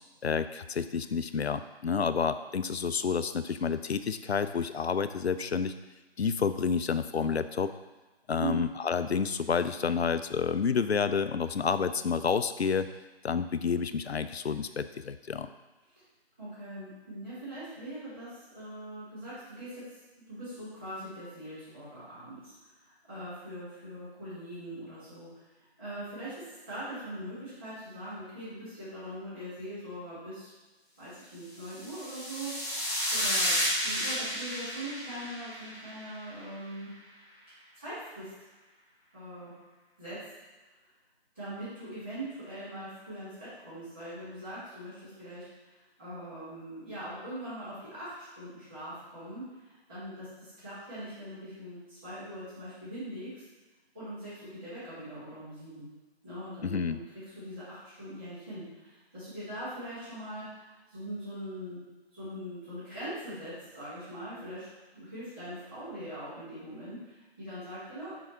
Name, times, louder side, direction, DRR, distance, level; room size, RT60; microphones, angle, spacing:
voice 1, 0.2-5.7 6.2-7.7 8.3-12.9 13.2-15.5 56.6-57.0, left 6 dB, 75° left, 12 dB, 0.5 m, -29 dB
voice 2, 16.4-19.8 20.3-22.5 23.1-25.4 25.8-30.5 31.0-32.5 32.8-36.9 37.8-38.3 39.1-39.5 40.0-40.2 41.3-45.4 46.0-53.4 53.9-55.9 56.2-57.0 57.4-61.8 62.1-68.1, right 1 dB, 10° right, -17 dB, 1.8 m, -41 dB
sound 1, 31.6-36.1, equal, 15° left, 1.0 m, -32 dB
6.1 x 3.6 x 4.5 m, 1.2 s
figure-of-eight pair, 170°, 32 cm